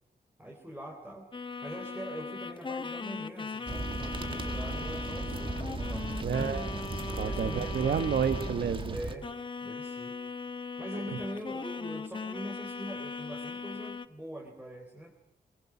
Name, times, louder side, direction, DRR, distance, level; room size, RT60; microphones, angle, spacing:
voice 1, 0.4-6.5 7.2-8.5 8.9-9.3 9.6-10.2 10.8-15.1, equal, 10° right, 0 dB, 4.1 m, -43 dB
sound 1, 1.3-8.8 9.2-14.1, left 4 dB, 30° left, 1.1 m, -39 dB
sound 2, 3.7-9.1, right 2 dB, 30° right, 1.9 m, -36 dB
voice 2, 6.2-9.0, right 7 dB, 70° right, 10 dB, 1.1 m, -30 dB
23.5 x 22.0 x 6.0 m, 0.87 s
wide cardioid pair, 120°, 17 cm